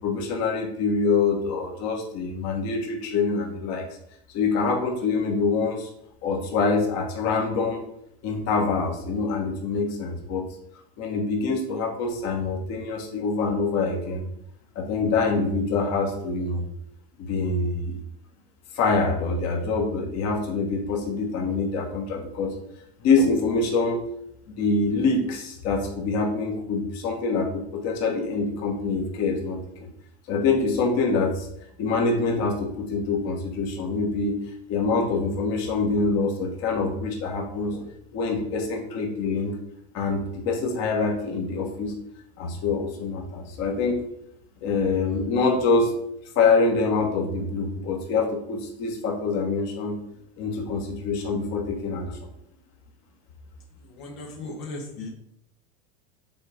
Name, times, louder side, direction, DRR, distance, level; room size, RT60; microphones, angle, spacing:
voice 1, 0.0-3.9 4.3-5.9 6.2-7.8 8.2-10.4 11.0-14.2 14.7-16.6 17.2-18.0 18.7-22.5 23.0-24.0 24.5-29.9 30.3-31.5 31.8-34.4 34.7-37.8 38.1-39.6 39.9-41.9 42.4-44.0 44.6-45.9 46.3-50.0 50.4-52.1, left 4 dB, 50° left, 1 dB, 1.7 m, -25 dB
voice 2, 53.8-55.1, left 2 dB, 70° left, -2 dB, 1.4 m, -37 dB
8.0 x 3.7 x 3.6 m, 0.77 s
supercardioid pair, 120°, 33 cm